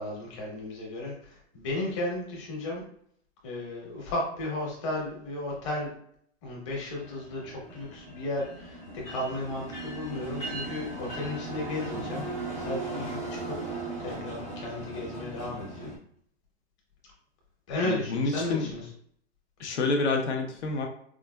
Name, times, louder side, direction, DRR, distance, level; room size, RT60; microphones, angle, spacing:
voice 1, 0.0-2.8 3.4-5.9 6.4-12.2 12.5-13.5 14.0-15.9 17.7-18.9, left 1 dB, 25° left, -3 dB, 1.1 m, -34 dB
sound 1, 7.0-16.0, right 2 dB, 10° left, 0.4 m, -38 dB
voice 2, 18.1-18.7 19.6-20.9, left 3 dB, 80° left, 3 dB, 1.0 m, -27 dB
4.8 x 2.4 x 2.2 m, 0.66 s
supercardioid pair, 180°, 33 cm